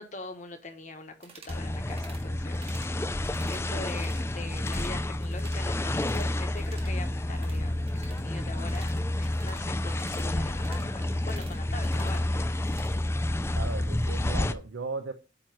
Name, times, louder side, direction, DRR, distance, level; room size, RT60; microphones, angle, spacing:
voice 1, 0.0-12.4, left 2 dB, 40° left, 1.1 m, -43 dB
sound 1, 1.2-1.6 1.9-2.2 2.5-2.9 3.2-4.2 4.5-4.9 5.2-6.3 6.5-12.9, right 4 dB, 30° right, 1.7 m, -52 dB
sound 2, 1.5-14.5, left 1 dB, 15° left, 0.3 m, -30 dB
voice 2, 13.5-15.1, right 3 dB, 80° right, 0.6 m, -36 dB
8.9 x 3.1 x 6.1 m
head